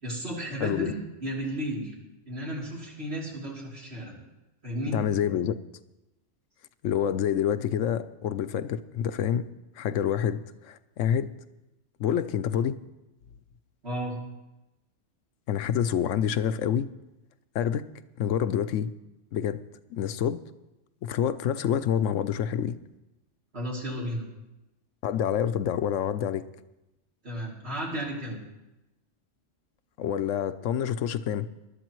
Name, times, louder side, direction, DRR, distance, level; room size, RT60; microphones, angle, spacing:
voice 1, 0.0-1.9 2.2-4.2 4.6-5.0 13.8-14.2 23.5-24.2 27.2-28.4, right 1 dB, 55° right, -4 dB, 3.4 m, -33 dB
voice 2, 0.6-0.9 4.9-5.6 6.8-9.4 9.8-11.3 12.0-12.8 15.5-16.9 17.5-17.8 18.2-18.9 19.3-19.6 19.9-20.4 21.0-22.8 25.0-26.4 30.0-31.5, left 9 dB, 85° left, 13 dB, 1.0 m, -27 dB
19.5 x 12.0 x 3.1 m, 0.96 s
omnidirectional pair, 1.3 m